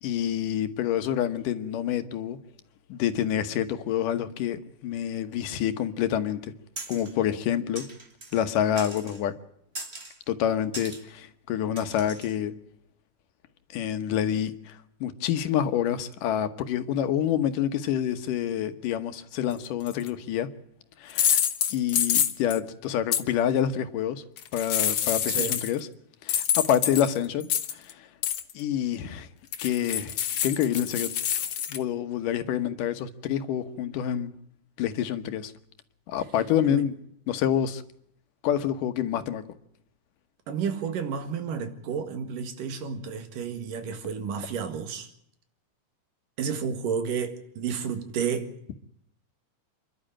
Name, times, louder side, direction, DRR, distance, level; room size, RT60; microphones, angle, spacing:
voice 1, 0.0-2.4 2.9-6.5 6.9-7.8 8.3-9.3 10.3-12.5 13.7-20.5 21.0-21.4 21.7-24.2 24.5-25.9 26.2-27.5 27.8-28.1 28.5-29.3 29.6-30.2 30.4-31.1 31.7-34.3 34.8-35.5 36.1-36.9 37.3-37.8 38.4-39.4, left 10 dB, 80° left, 2.8 m, -27 dB
sound 1, 6.8-7.1 7.7-8.4 8.8-9.2 9.7-10.2 10.7-11.0 11.8-12.4, right 2 dB, 25° right, 1.9 m, -40 dB
sound 2, 19.9-20.1 21.1-22.6 23.1-23.2 24.4-25.8 26.3-27.9 28.2-28.5 29.5-31.8, left 9 dB, 55° left, 1.7 m, -26 dB
voice 2, 25.3-25.6 36.7-36.8 40.5-45.1 46.4-48.6, right 6 dB, 90° right, 3.5 m, -31 dB
28.0 x 12.0 x 8.8 m
omnidirectional pair, 3.7 m